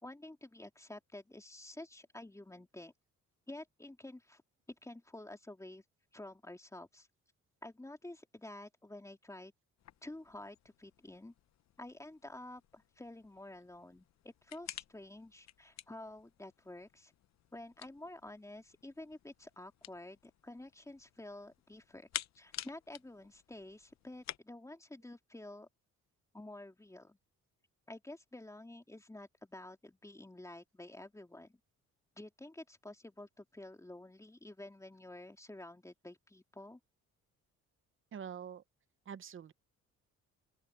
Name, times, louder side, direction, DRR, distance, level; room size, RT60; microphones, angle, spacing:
voice 1, 0.0-2.9 3.5-4.4 4.8-5.8 6.1-7.1 7.6-9.5 10.0-11.3 11.8-17.1 17.5-22.1 22.4-25.7 26.3-27.2 27.9-31.6 32.2-36.8, left 1 dB, 10° left, 2.8 m, -50 dB
sound 1, 9.8-24.4, left 12 dB, 65° left, 0.8 m, -51 dB
voice 2, 38.1-38.6 39.1-39.5, right 7 dB, 40° right, 0.9 m, -45 dB
open air
cardioid pair, 90°, 30 cm